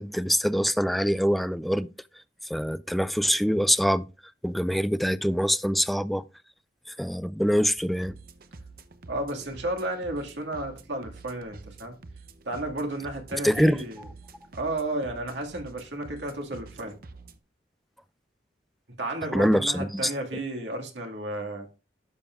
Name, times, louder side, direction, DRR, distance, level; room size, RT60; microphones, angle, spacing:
voice 1, 0.0-1.9 2.4-4.0 4.4-6.2 6.9-8.2 13.3-13.8 19.3-20.1, equal, ahead, 0.3 m, -24 dB
sound 1, 7.8-17.4, right 3 dB, 55° right, 0.7 m, -48 dB
voice 2, 9.1-11.9 12.5-14.0 14.5-16.9 19.0-21.7, right 1 dB, 90° right, 2.0 m, -32 dB
12.0 x 7.1 x 2.4 m
head